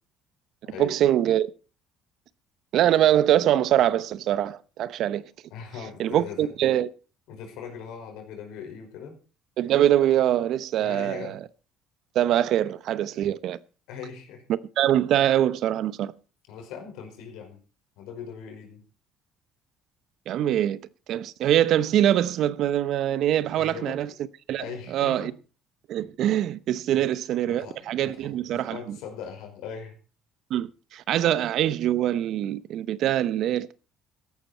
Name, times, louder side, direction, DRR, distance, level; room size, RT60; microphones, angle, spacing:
voice 1, 0.8-1.5 2.7-5.2 6.0-6.9 9.6-11.4 12.1-13.6 14.5-16.1 20.3-20.8 21.1-24.1 24.5-24.6 24.9-25.3 25.9-29.0 30.5-33.7, right 11 dB, 65° right, 0.8 m, -23 dB
voice 2, 5.5-6.5 7.3-9.2 10.8-11.4 13.9-14.4 16.5-17.6 18.0-18.8 23.4-24.0 24.6-25.3 26.9-27.1 27.4-30.0, left 7 dB, 75° left, 5.2 m, -40 dB
14.5 x 12.0 x 4.3 m
supercardioid pair, 70°, 0 cm